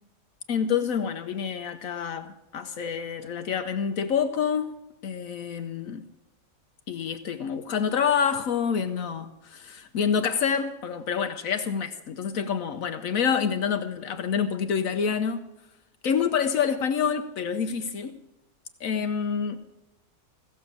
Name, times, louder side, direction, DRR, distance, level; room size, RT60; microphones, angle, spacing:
voice 1, 0.5-4.8 5.0-6.1 6.9-15.5 16.0-18.2 18.8-19.6, left 7 dB, 75° left, 1.2 m, -27 dB
16.0 x 7.0 x 8.4 m
omnidirectional pair, 1.5 m